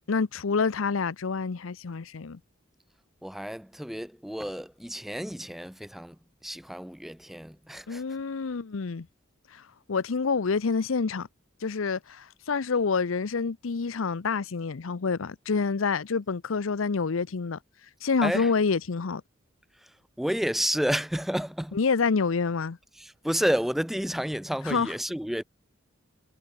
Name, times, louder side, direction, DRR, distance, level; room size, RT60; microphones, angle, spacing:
voice 1, 0.1-2.4 7.9-9.1 9.5-9.6 9.9-11.3 11.6-17.6 18.0-19.2 21.7-22.8 24.7-24.9, left 5 dB, 85° left, 0.7 m, -27 dB
voice 2, 3.2-8.2 18.2-18.5 19.7-21.8 22.9-25.4, equal, ahead, 0.3 m, -31 dB
head